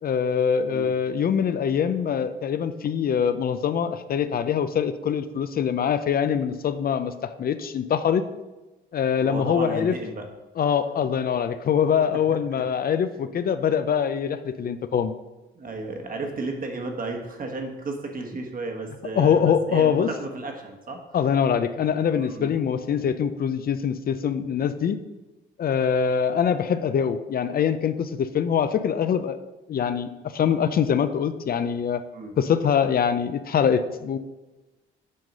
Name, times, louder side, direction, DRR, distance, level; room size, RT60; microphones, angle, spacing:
voice 1, 0.0-8.2 8.9-9.9 10.6-15.1 19.1-20.1 21.1-25.0 25.6-29.4 29.7-32.0 32.4-34.2, left 7 dB, 50° left, 11 dB, 0.5 m, -23 dB
voice 2, 9.2-10.2 12.1-12.6 15.5-21.0 22.2-22.5 32.1-32.3, right 3 dB, 45° right, 3 dB, 1.4 m, -33 dB
7.5 x 3.9 x 6.2 m, 1.1 s
cardioid pair, 90°, 20 cm